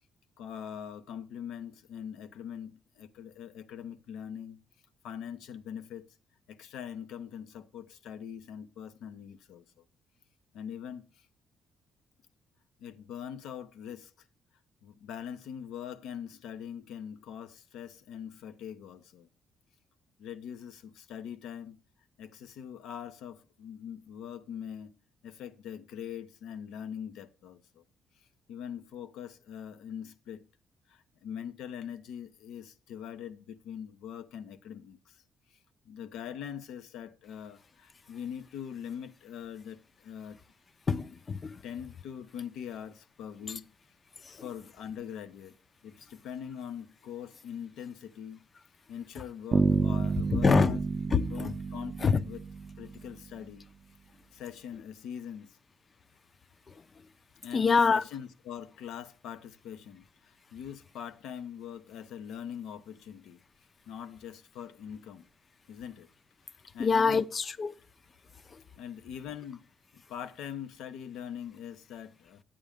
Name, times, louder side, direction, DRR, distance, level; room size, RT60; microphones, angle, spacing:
voice 1, 0.4-4.6 5.0-6.0 6.5-9.8 10.5-11.3 12.8-14.3 14.8-19.3 20.2-21.8 22.2-25.0 25.2-27.8 28.2-30.5 30.9-35.2 35.5-35.6 35.8-40.4 41.6-43.7 44.3-45.5 45.8-48.4 48.9-50.8 51.3-52.4 52.8-53.7 54.3-55.6 57.4-63.4 63.9-65.3 65.7-66.1 66.7-67.3 68.8-69.6 69.9-72.4, left 8 dB, 85° left, 0.8 m, -42 dB
voice 2, 40.9-41.6 44.2-44.5 50.3-50.8 51.1-51.5 52.0-52.2 56.7-56.8 57.5-58.0 66.8-67.7 68.5-68.6, left 5 dB, 35° left, 0.6 m, -25 dB
Bass guitar, 49.5-53.3, right 4 dB, 40° right, 0.5 m, -30 dB
10.5 x 8.6 x 3.6 m
cardioid pair, 90°, 0 cm